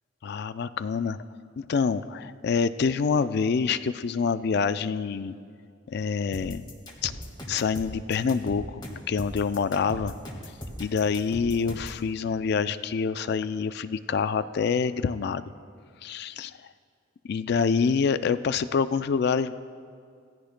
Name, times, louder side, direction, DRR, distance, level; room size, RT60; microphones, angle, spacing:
voice 1, 0.2-1.2 1.6-5.4 5.9-6.7 7.0-7.1 7.5-8.8 9.1-10.1 10.8-15.5 16.0-16.5 17.3-19.5, left 5 dB, 55° left, 13 dB, 0.4 m, -26 dB
sound 1, 6.3-12.0, equal, 25° left, 1.7 m, -39 dB
18.5 x 15.0 x 2.2 m, 2.3 s
head